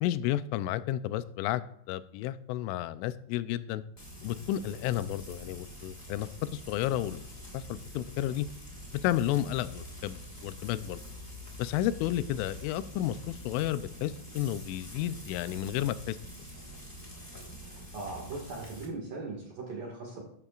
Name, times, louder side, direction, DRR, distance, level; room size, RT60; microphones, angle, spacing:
voice 1, 0.0-1.6 1.9-3.8 4.2-7.2 7.5-8.5 9.0-11.0 11.6-16.2, left 13 dB, 90° left, 14 dB, 3.1 m, -32 dB
Frying (food), 4.0-18.9, left 1 dB, 10° left, 2.8 m, -46 dB
voice 2, 17.7-20.2, right 3 dB, 55° right, -1 dB, 3.1 m, -39 dB
13.5 x 13.0 x 2.5 m, 0.68 s
omnidirectional pair, 5.5 m